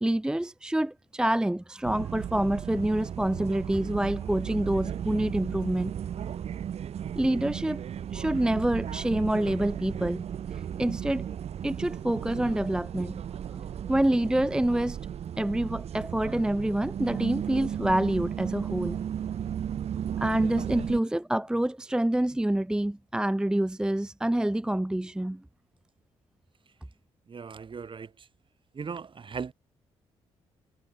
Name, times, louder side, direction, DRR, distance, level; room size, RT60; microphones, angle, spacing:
voice 1, 0.0-5.9 7.2-7.8 8.1-10.3 10.5-11.3 11.6-13.2 13.5-15.0 15.4-19.0 20.2-25.4, right 1 dB, 5° right, 0.6 m, -27 dB
sound 1, 1.8-21.0, right 9 dB, 60° right, 1.0 m, -35 dB
voice 2, 27.3-28.3 28.7-29.5, right 5 dB, 45° right, 4.6 m, -38 dB
cardioid pair, 80°, 12 cm